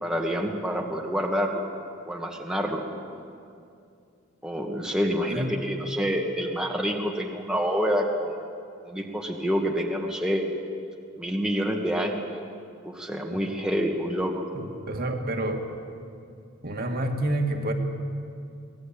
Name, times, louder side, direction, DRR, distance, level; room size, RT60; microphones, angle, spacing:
voice 1, 0.0-1.6 2.0-2.8 4.4-8.3 8.9-10.5 11.2-12.2 12.8-14.4, equal, 5° right, 0 dB, 1.9 m, -27 dB
voice 2, 5.0-5.6 14.5-15.7 16.6-17.7, right 1 dB, 50° right, 3 dB, 2.2 m, -29 dB
23.5 x 19.0 x 8.7 m, 2.4 s
head